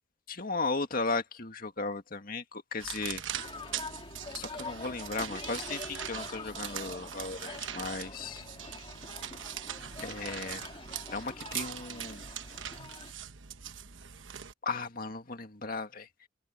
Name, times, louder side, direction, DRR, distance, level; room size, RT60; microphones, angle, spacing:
voice 1, 0.3-3.2 4.3-8.4 10.0-10.6 11.1-12.2 14.6-16.1, left 3 dB, 45° left, 2.0 m, -36 dB
sound 1, 2.8-14.5, right 9 dB, 75° right, 1.1 m, -41 dB
sound 2, 3.3-13.1, left 3 dB, 25° left, 1.9 m, -46 dB
head